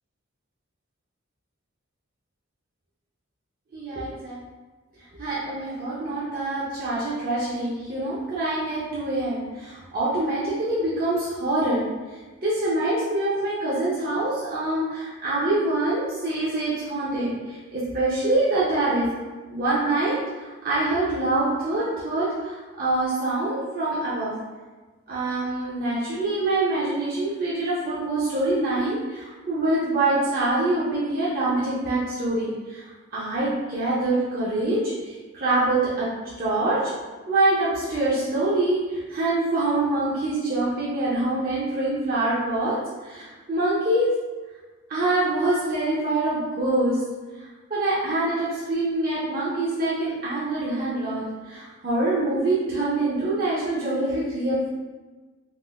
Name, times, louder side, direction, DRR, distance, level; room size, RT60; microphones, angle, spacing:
voice 1, 3.7-4.4 5.2-11.8 12.4-19.1 19.5-24.3 25.1-32.8 33.1-36.1 36.4-36.9 37.3-44.1 44.9-47.0 47.4-47.5 47.7-54.7, right 2 dB, 45° right, -8 dB, 0.5 m, -25 dB
3.6 x 2.4 x 2.3 m, 1.3 s
head